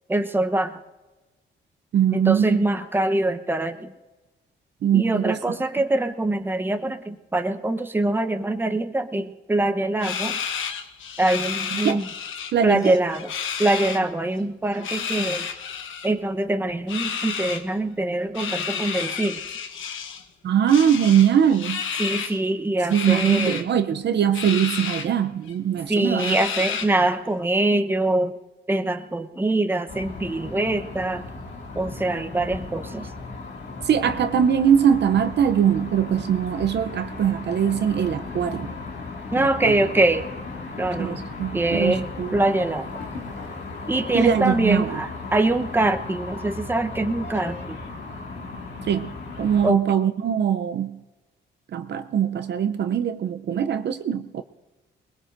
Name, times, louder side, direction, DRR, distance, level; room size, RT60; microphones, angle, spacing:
voice 1, 0.1-0.8 2.1-3.9 4.9-10.4 11.2-12.1 12.6-13.3 13.6-15.5 16.0-19.4 22.0-23.6 25.9-28.3 28.7-31.3 31.8-33.1 39.3-40.2 40.8-41.2 41.5-42.9 43.9-47.8 49.6-49.8, right 2 dB, 10° right, 0.9 m, -24 dB
voice 2, 1.9-2.6 4.8-5.6 11.7-12.0 12.5-12.9 20.4-21.8 22.9-26.4 33.8-38.7 39.3-39.8 41.0-42.4 44.1-45.0 48.9-51.0 51.7-54.4, right 8 dB, 60° right, 0.7 m, -22 dB
sound 1, 10.0-12.5 12.8-14.0 14.7-16.1 16.9-17.6 18.4-20.2 20.7-22.4 22.9-23.6 24.3-25.1 25.5-25.6 26.2-27.1, left 7 dB, 80° left, 1.2 m, -31 dB
sound 2, 29.9-49.7, left 3 dB, 60° left, 2.0 m, -36 dB
21.0 x 20.5 x 2.6 m
cardioid pair, 90°, 20 cm